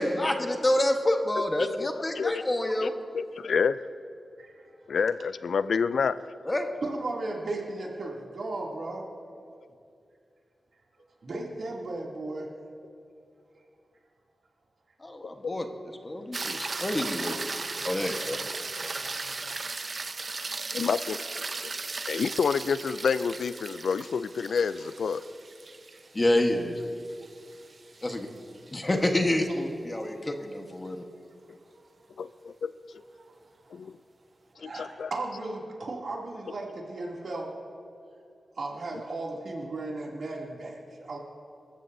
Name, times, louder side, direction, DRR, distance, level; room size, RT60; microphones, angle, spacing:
voice 1, 0.0-2.9 6.4-6.7 15.0-15.7 16.0-17.4 17.8-18.4 18.8-19.0 26.1-26.8 28.0-28.3 28.7-31.0, left 1 dB, 25° left, 4 dB, 1.3 m, -27 dB
voice 2, 2.8-3.8 4.9-6.2 15.4-15.6 20.7-21.2 21.6-21.7 22.1-25.2 32.2-32.7 33.7-34.0 34.6-35.1, left 6 dB, 90° left, 15 dB, 0.4 m, -28 dB
voice 3, 4.4-4.9 6.8-9.0 11.2-12.5 13.5-13.6 29.9-30.1 33.3-33.9 34.5-37.5 38.5-41.2, right 2 dB, 70° right, -2 dB, 2.7 m, -36 dB
sound 1, 16.3-28.7 33.2-33.3, right 3 dB, 45° right, 0.7 m, -37 dB
28.5 x 14.5 x 2.7 m, 2.4 s
wide cardioid pair, 105°, 0 cm